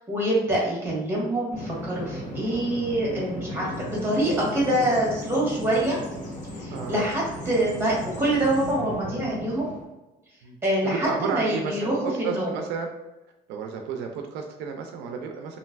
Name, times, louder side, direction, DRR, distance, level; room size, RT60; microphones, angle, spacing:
voice 1, 0.1-6.0 6.6-9.7 10.6-12.5, right 1 dB, 15° right, -5 dB, 1.4 m, -25 dB
Bird vocalization bird call bird song, 1.5-9.8, left 1 dB, 45° left, 1.1 m, -35 dB
voice 2, 6.7-7.0 10.4-10.6 10.8-12.9 13.5-15.6, right 5 dB, 90° right, 3 dB, 0.4 m, -32 dB
3.1 x 2.6 x 2.4 m, 1.0 s
cardioid pair, 110°, 17 cm